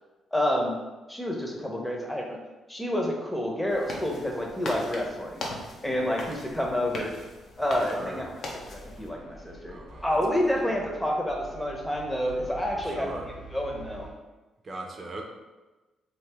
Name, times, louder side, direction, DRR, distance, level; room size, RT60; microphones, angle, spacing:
voice 1, 0.3-0.8 1.1-2.4 2.7-5.4 5.8-7.1 7.6-8.4 8.7-9.8 10.0-13.1 13.5-14.1, left 1 dB, 10° left, 0 dB, 0.7 m, -28 dB
sound 1, 3.7-9.1, left 2 dB, 55° left, 0.6 m, -39 dB
voice 2, 5.9-6.4 7.9-8.3 9.7-10.8 12.7-13.3 14.6-15.2, right 2 dB, 40° right, 1 dB, 0.6 m, -41 dB
sound 2, 6.5-7.2 8.6-14.1, right 2 dB, 85° left, 0.8 m, -47 dB
2.8 x 2.6 x 3.4 m, 1.2 s
cardioid pair, 90°, 0 cm